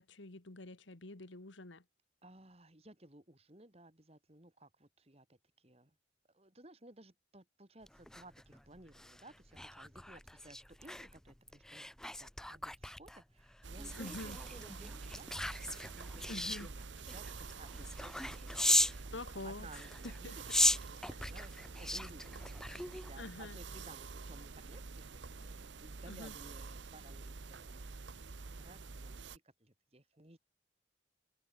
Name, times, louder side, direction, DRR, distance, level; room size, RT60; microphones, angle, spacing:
voice 1, 0.0-1.8 13.9-14.4 16.3-16.7 19.1-19.7 20.0-20.4 23.2-23.6 26.1-26.3, left 2 dB, 75° left, 1.6 m, -46 dB
voice 2, 2.2-6.0 6.3-16.8 17.1-20.4 20.8-30.4, right 2 dB, 30° right, 2.4 m, -58 dB
sound 1, 7.9-19.0 19.6-23.3 23.7-23.9, left 1 dB, 5° left, 0.7 m, -37 dB
sound 2, 13.6-29.4, right 4 dB, 70° right, 0.9 m, -48 dB
head